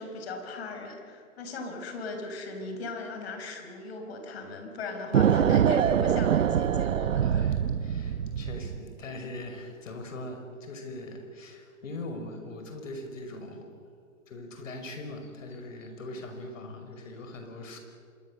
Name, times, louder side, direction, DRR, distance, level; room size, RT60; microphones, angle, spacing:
voice 1, 0.0-7.4, left 3 dB, 45° left, 5 dB, 5.1 m, -38 dB
sound 1, 5.1-8.8, right 8 dB, 65° right, 1.1 m, -24 dB
voice 2, 6.8-13.7 14.3-17.8, left 2 dB, 65° left, 5 dB, 5.9 m, -41 dB
26.0 x 21.5 x 7.8 m, 2.3 s
hypercardioid pair, 155°, 41 cm